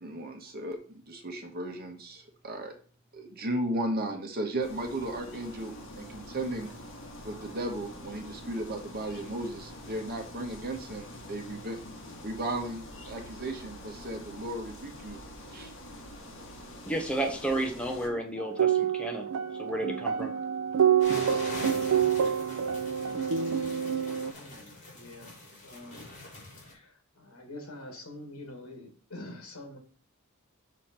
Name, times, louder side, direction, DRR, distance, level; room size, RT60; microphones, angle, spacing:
voice 1, 0.0-2.7 3.1-6.7 7.2-11.8 12.2-15.2 15.5-15.7, right 1 dB, 45° right, 4 dB, 1.4 m, -35 dB
sound 1, 4.6-18.1, left 1 dB, 60° left, 2.1 m, -46 dB
voice 2, 16.9-19.3 19.6-20.3, right 1 dB, 5° left, 2 dB, 1.0 m, -32 dB
sound 2, 18.4-24.3, right 8 dB, 75° right, 0.5 m, -27 dB
sound 3, 21.0-26.7, left 2 dB, 35° left, 3.4 m, -43 dB
voice 3, 24.3-25.3 25.6-26.1 26.6-29.8, left 1 dB, 75° left, 3 dB, 2.2 m, -46 dB
6.4 x 6.4 x 4.4 m, 0.42 s
head